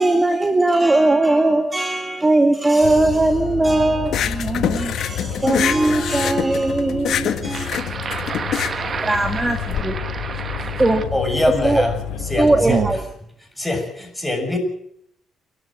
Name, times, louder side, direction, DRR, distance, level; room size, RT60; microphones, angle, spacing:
voice 1, 0.0-7.7 9.0-10.0 10.8-11.0 11.6-11.8 12.4-13.0, right 2 dB, 15° right, 2.1 m, -19 dB
sound 1, 2.8-13.0, left 7 dB, 85° left, 6.5 m, -30 dB
sound 2, 4.1-9.8, left 9 dB, 70° left, 1.6 m, -25 dB
voice 2, 7.5-11.0 12.6-12.9, right 5 dB, 45° right, 1.3 m, -28 dB
voice 3, 11.1-12.0 12.3-12.8 13.6-14.6, left 1 dB, 10° left, 7.3 m, -23 dB
29.5 x 12.0 x 7.5 m
cardioid pair, 90°, 0 cm